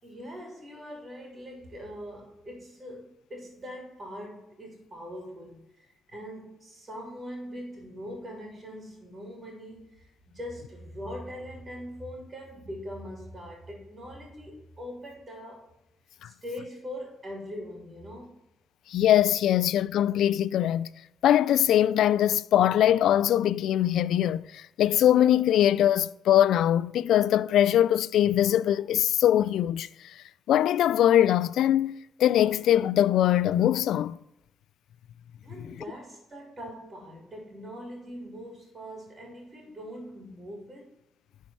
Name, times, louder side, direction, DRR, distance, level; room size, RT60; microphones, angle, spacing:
voice 1, 0.0-15.7 16.2-18.3 35.4-40.9, equal, 30° right, 3.2 m, -42 dB
voice 2, 18.9-20.9 21.2-29.9 30.5-31.9 32.2-34.2, left 11 dB, 75° left, 0.4 m, -22 dB
10.5 x 4.7 x 5.6 m
cardioid pair, 90°, 0 cm